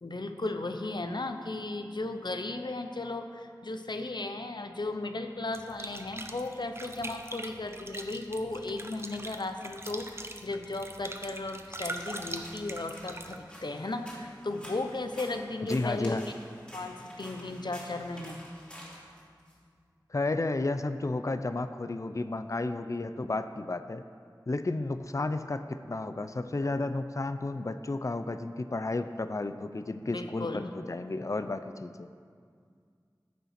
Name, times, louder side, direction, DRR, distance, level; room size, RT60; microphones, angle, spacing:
voice 1, 0.0-16.3 16.7-18.5 26.6-26.7 30.1-30.9, left 2 dB, 75° left, 6 dB, 0.7 m, -36 dB
sound 1, 5.5-13.4, right 1 dB, 35° right, 0.8 m, -42 dB
sound 2, 11.9-19.5, equal, 15° left, 2.7 m, -49 dB
voice 2, 15.7-16.2 20.1-24.0 24.5-32.1, left 2 dB, 45° left, 10 dB, 0.4 m, -32 dB
13.5 x 5.6 x 5.8 m, 2.1 s
wide cardioid pair, 50°, 8 cm